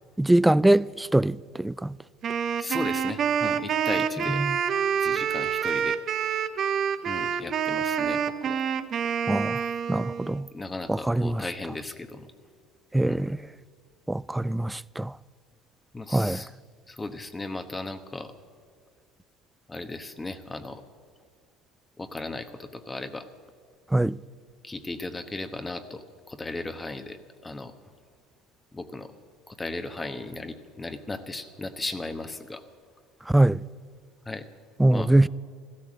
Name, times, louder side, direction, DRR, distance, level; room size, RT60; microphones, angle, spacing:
voice 1, 0.2-1.9 4.3-4.6 9.3-9.6 9.9-10.5 10.9-11.4 12.9-13.4 14.1-15.1 16.1-16.4 23.9-24.2 33.3-33.6 34.8-35.3, right 1 dB, 5° right, 0.3 m, -22 dB
Wind instrument woodwind instrument, 2.2-10.4, right 7 dB, 45° right, 0.8 m, -27 dB
voice 2, 2.6-4.4 5.0-6.0 7.1-8.6 10.5-12.3 13.0-13.2 15.9-16.5 16.9-18.3 19.7-20.8 22.0-23.3 24.6-27.7 28.7-29.1 29.5-32.6 34.3-34.5 34.9-35.1, left 2 dB, 15° left, 1.1 m, -36 dB
14.5 x 13.0 x 7.5 m
supercardioid pair, 90°, 0 cm